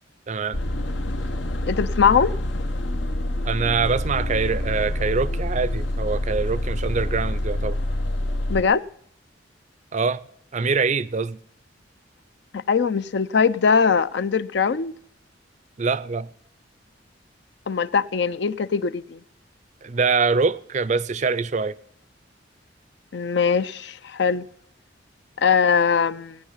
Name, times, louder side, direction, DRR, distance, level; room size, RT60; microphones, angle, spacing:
voice 1, 0.3-0.6 3.4-7.8 9.9-10.2 10.5-11.4 15.8-16.3 19.8-21.7, right 4 dB, 40° right, 0.5 m, -24 dB
sound 1, 0.5-8.6, left 1 dB, 85° left, 1.3 m, -26 dB
voice 2, 1.7-2.3 8.5-8.8 12.5-14.9 17.7-19.2 23.1-24.5 25.4-26.4, left 6 dB, 65° left, 0.5 m, -21 dB
18.0 x 9.3 x 5.6 m
head